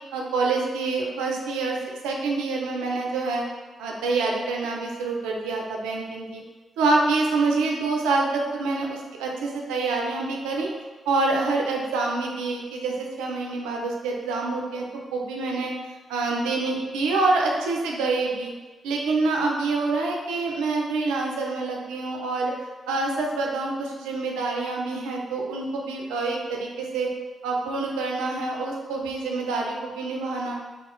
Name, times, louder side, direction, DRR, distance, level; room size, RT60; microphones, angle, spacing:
voice 1, 0.1-1.8 2.0-3.4 3.8-6.4 6.8-10.7 11.1-15.7 16.1-18.5 18.8-22.5 22.9-27.1 27.4-30.5, right 3 dB, 80° right, 0 dB, 0.5 m, -26 dB
3.6 x 2.9 x 3.8 m, 1.2 s
hypercardioid pair, 40°, 0 cm